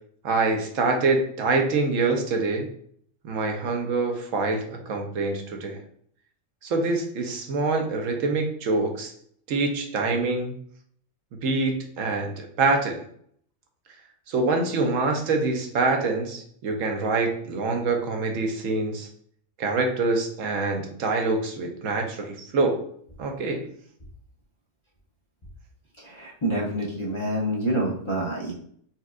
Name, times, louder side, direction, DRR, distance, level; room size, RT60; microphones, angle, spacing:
voice 1, 0.2-2.7 3.2-5.8 6.6-9.1 9.5-10.5 11.3-13.0 14.3-19.1 19.6-22.8 23.2-23.6, right 3 dB, 80° right, 3 dB, 1.1 m, -25 dB
voice 2, 26.0-28.5, right 1 dB, 35° left, -6 dB, 0.5 m, -27 dB
4.2 x 2.3 x 2.4 m, 0.62 s
omnidirectional pair, 1.3 m